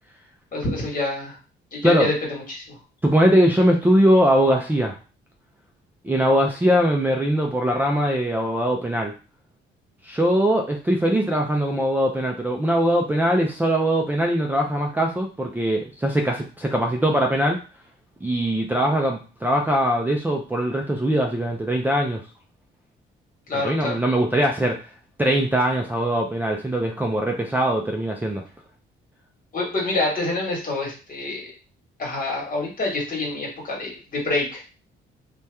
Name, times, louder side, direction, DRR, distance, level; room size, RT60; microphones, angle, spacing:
voice 1, 0.5-1.4 1.7-2.8 23.5-24.0 29.5-31.5 32.0-34.6, left 2 dB, 45° left, -2 dB, 1.4 m, -27 dB
voice 2, 3.0-4.9 6.0-9.1 10.1-17.6 18.2-22.2 23.5-24.8 25.2-28.4, equal, 10° right, -1 dB, 0.4 m, -21 dB
2.7 x 2.3 x 3.3 m, 0.34 s
cardioid pair, 90°, 20 cm